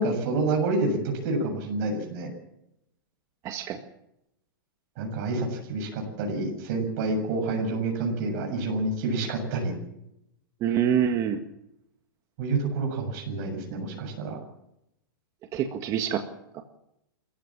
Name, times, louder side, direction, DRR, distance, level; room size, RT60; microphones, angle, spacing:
voice 1, 0.0-2.3 5.0-9.8 12.4-14.4, right 2 dB, 45° right, 1 dB, 7.3 m, -28 dB
voice 2, 3.4-3.8 10.6-11.4 15.5-16.2 16.5-16.6, right 9 dB, 30° right, 5 dB, 1.8 m, -26 dB
28.0 x 15.0 x 7.5 m, 0.83 s
hypercardioid pair, 150°, 12 cm